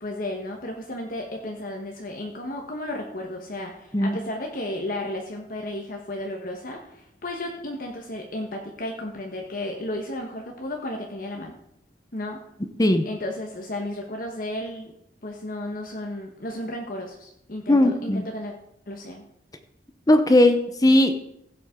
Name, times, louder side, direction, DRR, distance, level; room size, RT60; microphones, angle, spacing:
voice 1, 0.0-11.6 12.1-12.4 13.0-14.9 15.2-18.5 18.9-19.2, left 1 dB, 50° left, 1 dB, 1.2 m, -33 dB
voice 2, 17.7-18.2 20.1-21.2, left 1 dB, 20° left, 8 dB, 0.8 m, -18 dB
15.5 x 8.0 x 3.7 m, 0.78 s
head